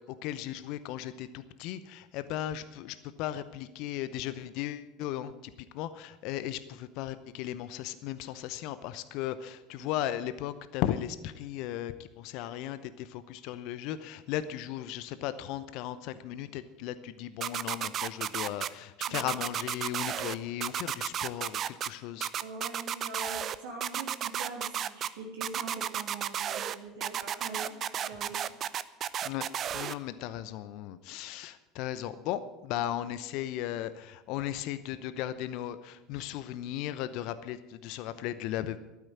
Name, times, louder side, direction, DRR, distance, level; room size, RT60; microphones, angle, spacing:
voice 1, 0.1-22.3 29.2-29.5 29.7-38.8, left 12 dB, 60° left, 13 dB, 0.7 m, -36 dB
sound 1, 17.4-18.7 19.0-20.3 20.6-21.9 22.2-23.6 23.8-25.1 25.4-26.7 27.0-29.9, right 10 dB, 40° right, 0.6 m, -32 dB
voice 2, 22.4-28.4, right 3 dB, 70° right, -2 dB, 3.1 m, -43 dB
12.0 x 9.7 x 8.9 m, 1.0 s
figure-of-eight pair, 70°, 0 cm